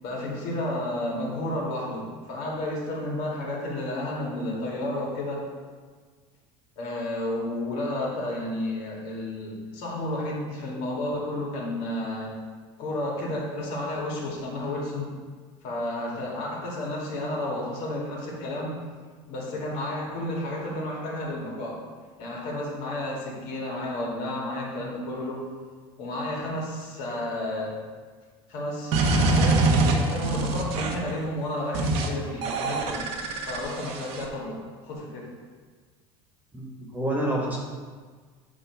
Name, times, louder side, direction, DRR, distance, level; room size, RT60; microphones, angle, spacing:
voice 1, 0.0-5.4 6.8-12.3 12.8-15.1 15.6-18.8 19.3-21.8 22.2-25.5 26.0-27.8 28.5-33.0 33.4-35.3, left 1 dB, 65° left, -3 dB, 2.2 m, -32 dB
sound 1, 28.9-31.1 31.7-32.1 32.4-34.3, right 2 dB, 60° right, 1.0 m, -24 dB
voice 2, 36.5-37.6, right 1 dB, 15° right, -3 dB, 1.5 m, -28 dB
8.7 x 3.0 x 5.9 m, 1.5 s
cardioid pair, 140°, 12 cm